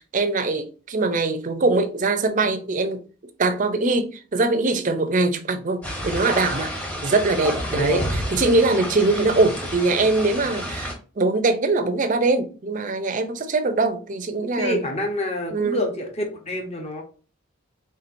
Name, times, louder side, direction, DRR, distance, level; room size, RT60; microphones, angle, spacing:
voice 1, 0.0-3.0 3.4-6.7 7.0-8.0 8.3-14.8 15.5-15.8, right 3 dB, 35° right, 0.5 m, -22 dB
sound 1, 5.8-10.9, equal, 5° left, 0.8 m, -30 dB
voice 2, 7.7-8.3 14.6-17.0, left 1 dB, 30° left, 0.9 m, -27 dB
4.3 x 3.7 x 2.6 m
head